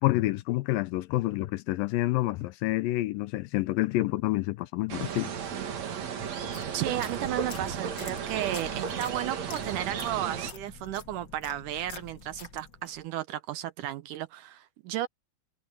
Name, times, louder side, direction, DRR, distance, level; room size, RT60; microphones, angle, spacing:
voice 1, 0.0-5.3, left 18 dB, 80° left, 2.3 m, -28 dB
sound 1, 4.9-10.5, right 7 dB, 55° right, 2.9 m, -34 dB
sound 2, 6.3-13.0, left 6 dB, 45° left, 1.5 m, -46 dB
voice 2, 6.7-15.1, right 12 dB, 75° right, 2.0 m, -34 dB
omnidirectional pair, 4.2 m